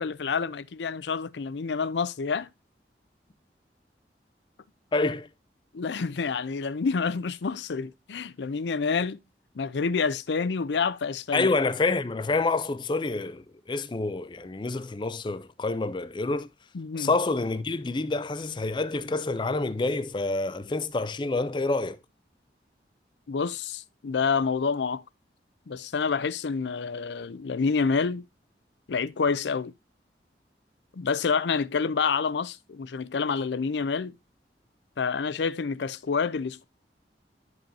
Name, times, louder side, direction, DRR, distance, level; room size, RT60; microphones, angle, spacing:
voice 1, 0.0-2.5 5.7-9.2 9.6-11.5 16.7-17.1 23.3-25.0 25.7-28.2 28.9-29.7 30.9-34.1 35.0-36.6, left 5 dB, 85° left, 0.5 m, -28 dB
voice 2, 4.9-5.3 11.3-16.5 17.0-22.0, left 3 dB, 25° left, 0.4 m, -27 dB
10.5 x 5.4 x 2.7 m
head